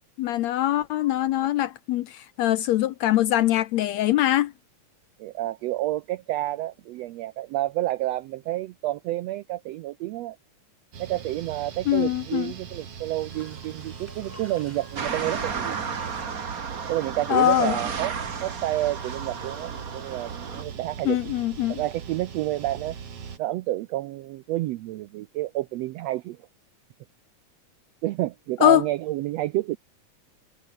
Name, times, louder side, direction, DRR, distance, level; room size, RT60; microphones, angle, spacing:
voice 1, 0.2-4.5 11.9-12.5 17.3-17.8 21.1-21.8 28.6-28.8, left 13 dB, 75° left, 1.8 m, -22 dB
voice 2, 5.2-10.4 11.0-15.8 16.9-21.2 21.7-23.0 23.4-26.4 28.0-29.8, right 16 dB, 75° right, 1.6 m, -29 dB
sound 1, 10.9-23.4, right 7 dB, 55° right, 3.3 m, -40 dB
sound 2, 12.8-16.4 19.3-19.4, left 1 dB, 5° left, 4.0 m, -50 dB
sound 3, 15.0-20.6, right 6 dB, 35° right, 1.8 m, -33 dB
omnidirectional pair, 3.5 m